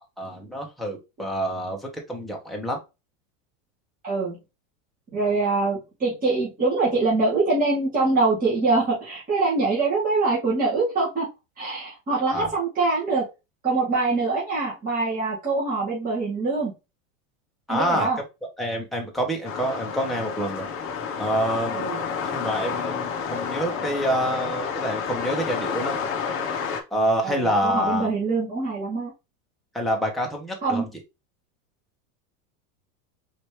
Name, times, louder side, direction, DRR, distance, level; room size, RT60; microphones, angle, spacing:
voice 1, 0.2-2.8 12.3-12.5 17.7-18.2 18.6-20.7 21.2-21.9 22.2-25.9 26.9-28.1 29.7-30.9, equal, ahead, -1 dB, 1.1 m, -27 dB
voice 2, 4.0-4.4 5.1-11.3 11.6-13.2 13.6-16.7 17.7-18.2 21.7-22.0 27.2-29.1 30.6-30.8, right 3 dB, 20° right, -7 dB, 1.9 m, -24 dB
sound 1, 19.4-26.8, left 6 dB, 35° left, 1.0 m, -30 dB
4.3 x 3.1 x 3.2 m, 0.26 s
supercardioid pair, 135°, 40 cm